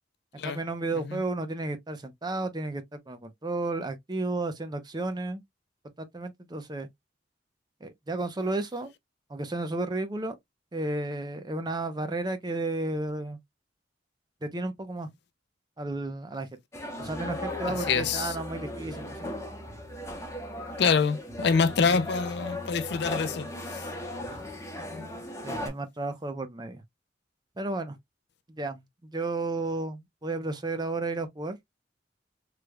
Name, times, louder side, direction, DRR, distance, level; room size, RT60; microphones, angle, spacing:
voice 1, 0.3-5.4 6.0-6.9 7.8-8.9 9.3-10.3 10.7-13.4 14.4-15.1 15.8-16.5 17.0-19.2 25.4-26.8 27.6-28.0 28.5-31.6, right 2 dB, 25° right, 0.6 m, -33 dB
sound 1, 16.7-25.7, left 1 dB, 15° left, 0.8 m, -37 dB
voice 2, 17.9-18.3 20.8-23.5, left 5 dB, 65° left, 0.4 m, -25 dB
3.3 x 3.2 x 2.2 m
head